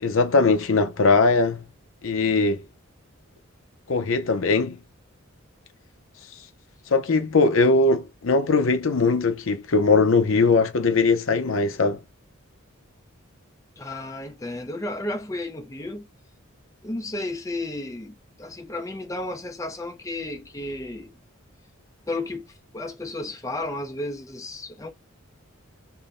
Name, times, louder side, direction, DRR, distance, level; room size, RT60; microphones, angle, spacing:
voice 1, 0.0-1.6 2.0-2.6 3.9-4.8 6.9-12.0, left 3 dB, 65° left, 0.6 m, -20 dB
voice 2, 13.8-16.1 16.8-21.1 22.1-24.9, left 2 dB, 15° left, 0.5 m, -33 dB
3.7 x 2.1 x 3.7 m
head